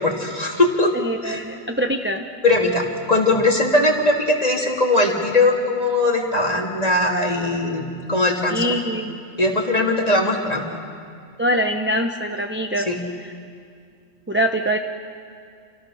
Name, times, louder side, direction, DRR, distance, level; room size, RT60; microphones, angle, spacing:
voice 1, 0.0-0.9 1.2-1.4 2.4-7.8 8.1-8.6 9.4-10.7 12.9-13.0, left 2 dB, 30° left, 0 dB, 3.0 m, -20 dB
voice 2, 0.9-2.2 8.5-9.2 11.4-12.9 13.2-13.3 14.3-14.8, equal, 10° right, 4 dB, 0.8 m, -23 dB
28.5 x 27.5 x 6.5 m, 2.3 s
omnidirectional pair, 1.4 m